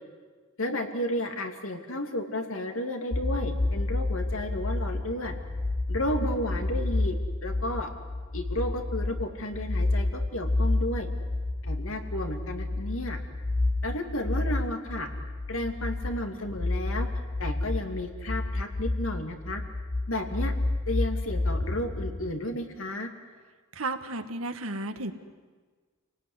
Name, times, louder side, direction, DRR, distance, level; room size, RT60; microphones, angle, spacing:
voice 1, 0.6-5.3 5.9-7.2 7.4-7.9 8.3-11.1 11.6-13.2 13.8-15.1 15.5-17.1 17.4-19.6 20.1-20.5 20.9-23.1, left 1 dB, 80° left, 5 dB, 2.8 m, -32 dB
sound 1, 3.1-22.3, left 2 dB, 35° left, 0.9 m, -30 dB
voice 2, 23.8-25.1, right 2 dB, 85° right, 8 dB, 1.7 m, -33 dB
28.0 x 18.5 x 9.8 m, 1.4 s
head